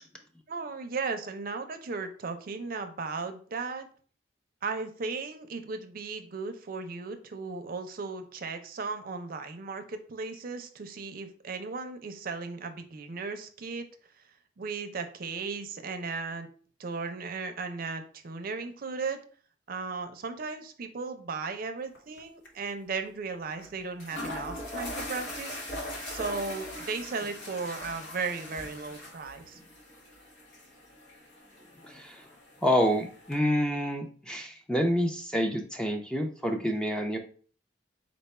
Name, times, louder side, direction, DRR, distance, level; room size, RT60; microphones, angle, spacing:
voice 1, 0.5-3.9 4.6-13.9 14.6-16.5 16.8-19.2 19.7-25.6 26.1-29.6, right 4 dB, 50° right, 8 dB, 0.5 m, -36 dB
sound 1, 21.9-22.2 22.4-22.5 23.6-23.7 24.0-33.4, left 1 dB, 90° left, 1.1 m, -41 dB
voice 2, 31.8-32.2 32.6-37.2, equal, 5° left, 3 dB, 0.4 m, -28 dB
4.2 x 2.2 x 4.1 m, 0.43 s
head